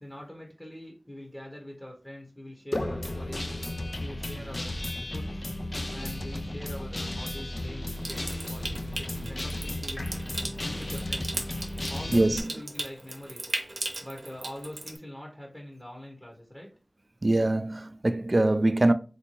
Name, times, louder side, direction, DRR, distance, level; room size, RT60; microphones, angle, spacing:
voice 1, 0.0-3.4 4.0-4.7 5.1-5.5 5.9-10.1 10.6-11.4 11.9-13.5 14.0-16.7, left 1 dB, 10° left, 0.8 m, -43 dB
Guitar, 2.7-12.4, left 1 dB, 50° left, 0.4 m, -34 dB
Water tap faucet / Sink (filling or washing) / Trickle dribble, 8.0-15.0, right 2 dB, 85° right, 0.6 m, -38 dB
voice 2, 12.1-12.5 17.2-18.9, right 2 dB, 50° right, 0.3 m, -23 dB
3.4 x 2.6 x 3.0 m
wide cardioid pair, 60°, 0 cm